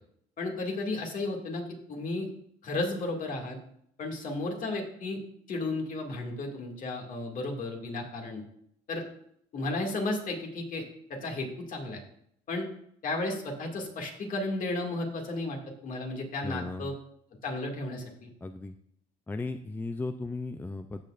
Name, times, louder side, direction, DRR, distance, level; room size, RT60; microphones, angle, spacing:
voice 1, 0.4-2.3 2.6-3.6 4.0-5.2 5.5-8.4 8.9-9.0 9.5-12.0 12.5-12.7 13.0-16.9 17.4-18.3, left 2 dB, 50° left, 1 dB, 2.2 m, -33 dB
voice 2, 16.4-16.9 18.4-18.8 19.3-21.0, left 3 dB, 10° left, 8 dB, 0.4 m, -36 dB
15.0 x 6.4 x 2.5 m, 0.69 s
cardioid pair, 110°, 17 cm